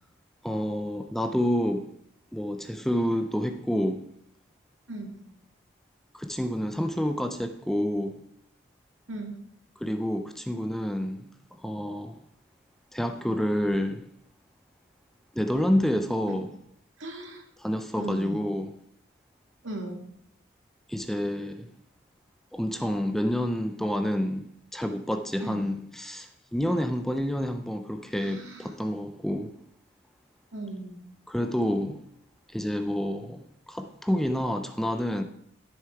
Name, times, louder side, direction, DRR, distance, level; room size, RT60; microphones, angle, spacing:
voice 1, 0.4-1.9 2.3-4.0 6.1-8.2 9.8-12.2 12.9-14.1 15.3-16.5 17.6-18.8 20.9-21.7 22.5-24.5 24.7-29.6 31.3-32.0 32.5-35.2, equal, ahead, 7 dB, 0.5 m, -28 dB
voice 2, 9.1-9.4 16.3-16.4 17.0-17.4 18.0-18.4 19.6-20.0 25.4-25.7 28.2-28.7 30.5-30.9, right 2 dB, 75° right, 2 dB, 2.3 m, -37 dB
12.5 x 6.9 x 4.6 m, 0.71 s
head